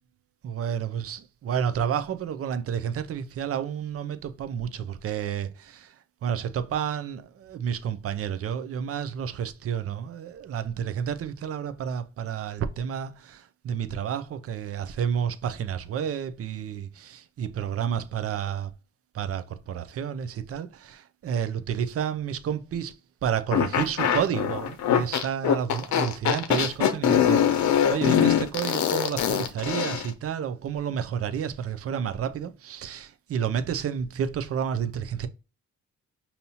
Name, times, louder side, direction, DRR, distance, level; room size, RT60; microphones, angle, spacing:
voice 1, 0.4-5.9 6.2-18.7 19.1-22.9 23.2-35.3, right 8 dB, 50° right, 0.6 m, -30 dB
sound 1, 23.5-30.1, left 9 dB, 70° left, 0.7 m, -23 dB
5.3 x 2.8 x 2.8 m
cardioid pair, 90°, 30 cm